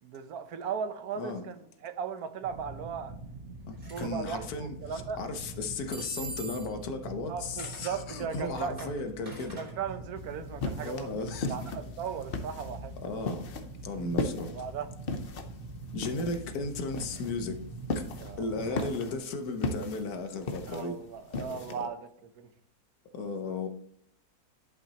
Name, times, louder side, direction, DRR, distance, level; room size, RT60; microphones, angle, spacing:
voice 1, 0.0-3.2 3.9-5.2 7.3-9.0 9.6-11.1 11.5-12.9 14.5-14.9 18.2-18.9 20.6-22.0 22.4-22.5, right 7 dB, 75° right, 1.3 m, -37 dB
sound 1, 2.4-19.0, right 2 dB, 60° right, 1.4 m, -44 dB
voice 2, 3.7-9.6 10.8-11.7 13.0-13.5 13.8-14.5 15.9-17.6 17.9-18.0 18.4-21.0 21.5-21.6 23.1-23.7, left 3 dB, 75° left, 1.4 m, -35 dB
sound 2, 3.8-4.1 5.9-6.8 7.6-7.9 8.4-9.7, right 2 dB, 30° right, 3.0 m, -42 dB
sound 3, 10.2-21.8, left 3 dB, 45° left, 0.9 m, -37 dB
10.5 x 5.8 x 2.9 m
omnidirectional pair, 1.6 m